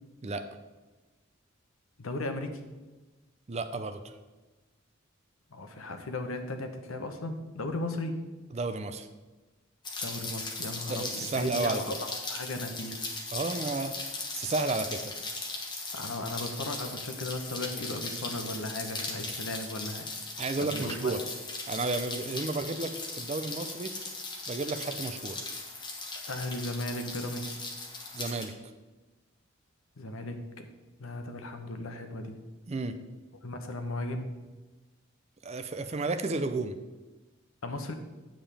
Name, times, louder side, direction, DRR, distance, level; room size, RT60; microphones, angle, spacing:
voice 1, 2.0-2.7 5.5-8.2 10.0-12.9 15.9-21.1 26.3-27.6 30.0-30.7 31.0-32.4 33.4-34.3 37.6-37.9, left 2 dB, 85° left, 6 dB, 0.9 m, -36 dB
voice 2, 3.5-4.2 8.5-9.1 10.9-11.8 13.3-13.9 14.3-15.1 20.4-21.2 21.7-23.9 24.5-25.4 28.1-28.5 32.7-33.0 35.4-36.8, right 3 dB, 30° right, 9 dB, 0.4 m, -32 dB
Rain, 9.8-28.5, left 3 dB, 20° left, 1.0 m, -38 dB
8.8 x 7.4 x 3.4 m, 1.2 s
head